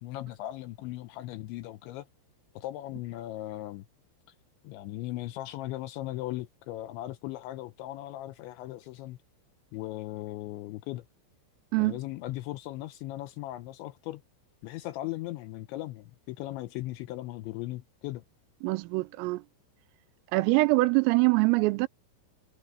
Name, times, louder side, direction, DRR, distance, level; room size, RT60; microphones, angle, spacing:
voice 1, 0.0-2.1 2.5-3.9 4.6-9.2 9.7-11.1 11.8-14.2 14.6-18.2, left 16 dB, 80° left, 2.7 m, -38 dB
voice 2, 18.6-19.4 20.3-21.9, right 24 dB, 85° right, 3.3 m, -24 dB
omnidirectional pair, 5.9 m